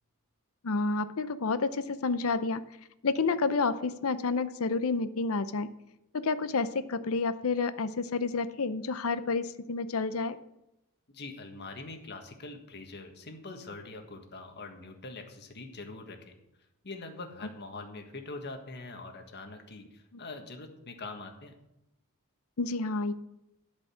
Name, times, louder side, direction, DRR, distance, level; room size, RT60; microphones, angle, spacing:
voice 1, 0.6-2.6 3.0-5.7 6.1-10.4 22.6-23.1, left 4 dB, 80° left, 13 dB, 0.6 m, -29 dB
voice 2, 11.1-16.3 16.8-21.5, left 3 dB, 50° left, 5 dB, 1.6 m, -43 dB
12.0 x 5.2 x 7.8 m, 0.88 s
head